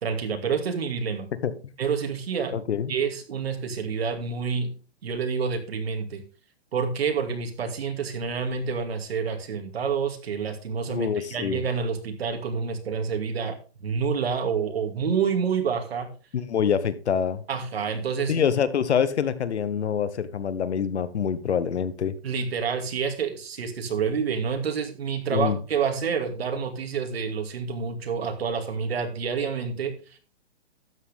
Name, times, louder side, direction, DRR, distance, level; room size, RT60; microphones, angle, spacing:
voice 1, 0.0-1.3 1.8-2.5 2.9-4.7 5.0-6.2 6.7-13.6 13.8-16.1 17.5-18.4 22.2-30.2, right 6 dB, 65° right, 5 dB, 2.5 m, -28 dB
voice 2, 2.5-2.9 10.9-11.6 16.3-17.4 18.3-22.2 25.3-25.6, left 7 dB, 85° left, 14 dB, 1.3 m, -25 dB
12.5 x 8.5 x 3.5 m, 0.36 s
hypercardioid pair, 175°, 33 cm